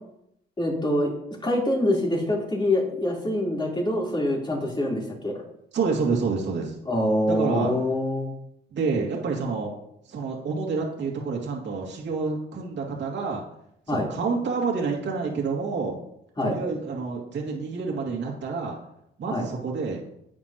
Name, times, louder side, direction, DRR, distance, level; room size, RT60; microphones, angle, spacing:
voice 1, 0.6-1.1 1.4-5.3 6.9-8.3 13.9-14.1 16.4-16.5 19.3-19.5, left 1 dB, 25° left, -3 dB, 3.9 m, -25 dB
voice 2, 5.7-6.7 7.3-7.7 8.7-9.7 10.1-13.4 13.9-15.9 16.4-18.8 19.2-20.0, right 4 dB, 65° right, -1 dB, 2.4 m, -28 dB
10.0 x 8.6 x 3.0 m, 0.76 s
cardioid pair, 90°, 20 cm